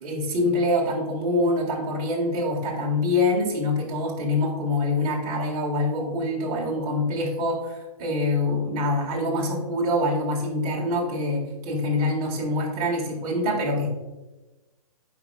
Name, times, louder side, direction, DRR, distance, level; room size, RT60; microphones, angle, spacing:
voice 1, 0.0-13.9, left 1 dB, 35° right, -3 dB, 1.7 m, -25 dB
9.1 x 4.7 x 2.3 m, 1.1 s
hypercardioid pair, 145°, 19 cm